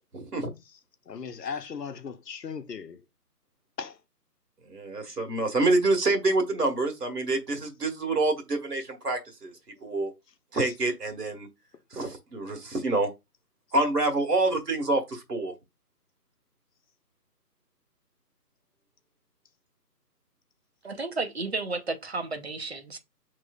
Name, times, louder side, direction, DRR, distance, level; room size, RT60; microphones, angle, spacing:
voice 1, 0.1-0.5 4.7-9.5 9.8-10.1 10.5-11.5 11.9-13.1 13.7-15.5, right 2 dB, 75° right, 1.6 m, -27 dB
voice 2, 1.1-3.0 3.8-3.9 10.5-10.7, left 6 dB, 85° left, 0.8 m, -37 dB
voice 3, 20.8-23.0, right 3 dB, 40° right, 0.7 m, -32 dB
6.7 x 3.1 x 2.3 m
figure-of-eight pair, 165°, 47 cm